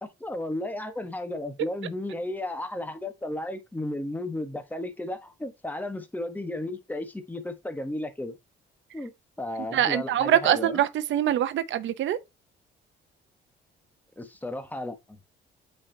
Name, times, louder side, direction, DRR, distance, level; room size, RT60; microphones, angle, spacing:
voice 1, 0.0-8.4 8.9-9.1 9.4-10.8 14.2-15.2, left 1 dB, 10° left, 1.2 m, -34 dB
voice 2, 9.7-12.2, right 11 dB, 70° right, 0.7 m, -24 dB
8.5 x 4.5 x 2.8 m
cardioid pair, 90°, 20 cm